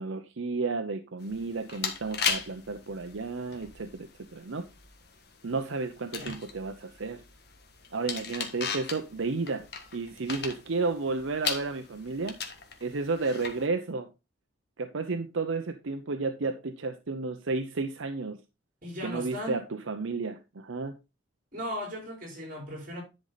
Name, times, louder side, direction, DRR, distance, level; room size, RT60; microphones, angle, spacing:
voice 1, 0.0-4.6 5.4-7.2 7.9-9.7 9.9-12.4 12.8-14.1 14.8-18.4 19.0-21.0, right 3 dB, 75° right, 0.7 m, -32 dB
sound 1, 1.2-13.7, left 6 dB, 50° left, 1.5 m, -38 dB
voice 2, 18.8-19.6 21.5-23.0, equal, 40° right, 4.9 m, -37 dB
10.5 x 5.4 x 4.0 m
head